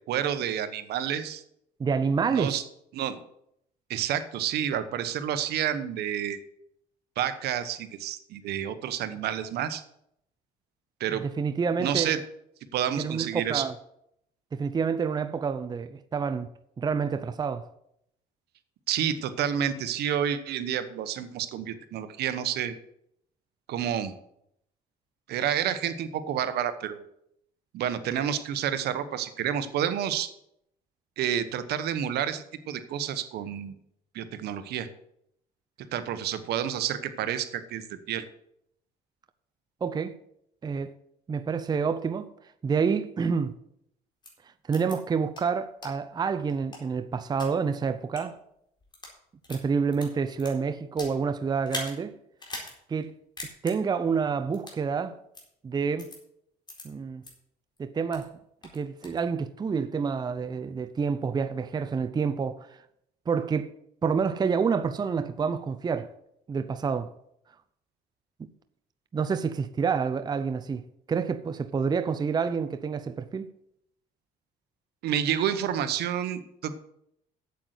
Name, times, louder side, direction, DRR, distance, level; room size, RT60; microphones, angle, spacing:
voice 1, 0.1-1.4 2.3-2.6 2.9-3.2 3.9-6.4 7.2-9.8 11.0-11.2 11.8-12.2 12.7-13.7 18.9-22.7 23.7-24.1 25.3-27.0 27.7-30.3 31.2-33.7 34.1-34.9 35.9-38.2 75.0-76.8, right 9 dB, 75° right, 1.1 m, -29 dB
voice 2, 1.8-2.6 11.1-12.2 13.0-13.7 14.5-16.5 16.8-17.7 39.8-40.2 40.6-40.9 41.3-42.3 42.6-43.5 44.7-48.4 49.5-52.2 52.9-53.1 53.6-55.2 55.6-56.1 56.8-57.2 57.8-58.4 58.7-62.7 63.3-63.7 64.0-66.1 66.5-67.1 69.1-70.8 71.1-73.5, right 5 dB, 25° right, 0.6 m, -28 dB
sound 1, 44.2-44.3 44.7-44.9 45.3-45.4 45.8-45.9 46.5-47.5 48.0-48.2 48.8-49.1 49.4-51.2 51.6-51.9 52.4-52.7 53.0-53.1 53.4-53.7 54.5-54.8 55.3-55.4 56.0-56.2 56.7-56.8 57.2-57.3 57.8-58.3 58.6-59.2, left 2 dB, 25° left, 4.1 m, -40 dB
8.4 x 7.9 x 8.2 m
cardioid pair, 110°, 17 cm